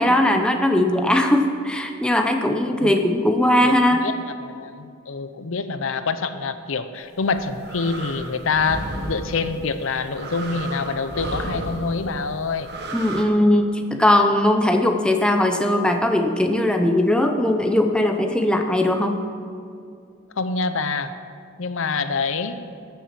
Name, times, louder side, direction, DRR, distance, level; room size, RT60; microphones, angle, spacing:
voice 1, 0.0-4.1 12.9-19.2, left 1 dB, 5° left, 4 dB, 0.6 m, -19 dB
voice 2, 4.0-12.7 20.4-21.1 21.6-22.6, left 4 dB, 70° left, 11 dB, 0.6 m, -26 dB
sound 1, 7.2-13.2, right 1 dB, 50° right, 1.4 m, -33 dB
13.0 x 7.1 x 7.4 m, 2.4 s
head